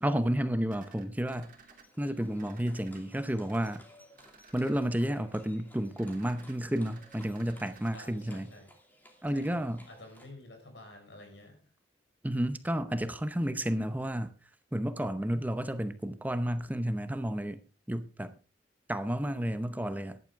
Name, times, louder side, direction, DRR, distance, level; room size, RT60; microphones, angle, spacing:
voice 1, 0.0-1.5 2.0-3.8 4.5-8.5 9.2-9.9 12.2-14.3 14.7-17.6 17.9-18.3 18.9-20.2, equal, 10° right, 0.8 m, -31 dB
sound 1, 0.7-1.8 2.4-3.0 3.5-3.8 4.1-4.9 6.0-7.9, right 4 dB, 50° right, 2.6 m, -56 dB
Livestock farm animals working animals, 1.1-10.3, equal, 10° left, 2.6 m, -59 dB
voice 2, 7.9-8.7 9.3-11.6, left 2 dB, 85° left, 5.3 m, -51 dB
14.0 x 11.0 x 3.6 m
head